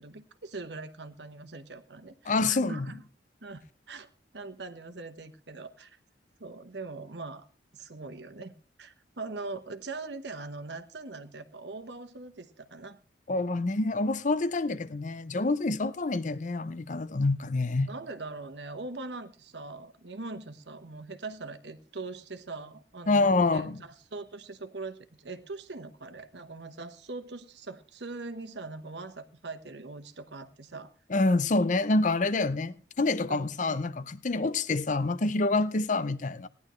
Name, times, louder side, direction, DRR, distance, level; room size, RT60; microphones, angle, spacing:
voice 1, 0.0-3.0 3.4-4.1 4.3-6.0 6.4-7.5 7.7-13.0 17.9-30.9 33.3-33.5, right 3 dB, 70° right, 1.2 m, -41 dB
voice 2, 2.3-2.9 13.3-17.9 23.1-23.8 31.1-36.5, left 3 dB, 45° left, 0.6 m, -27 dB
18.0 x 11.0 x 3.2 m
head